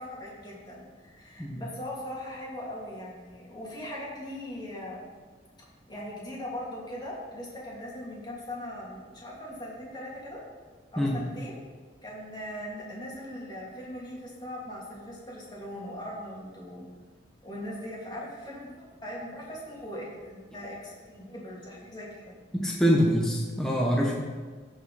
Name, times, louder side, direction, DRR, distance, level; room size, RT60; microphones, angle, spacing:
voice 1, 0.0-5.1 5.9-10.4 10.9-11.6 12.0-16.9 17.4-22.3, left 1 dB, 25° left, -5 dB, 2.8 m, -40 dB
voice 2, 22.5-24.3, equal, 5° left, -3 dB, 1.2 m, -25 dB
16.0 x 5.5 x 4.3 m, 1.5 s
head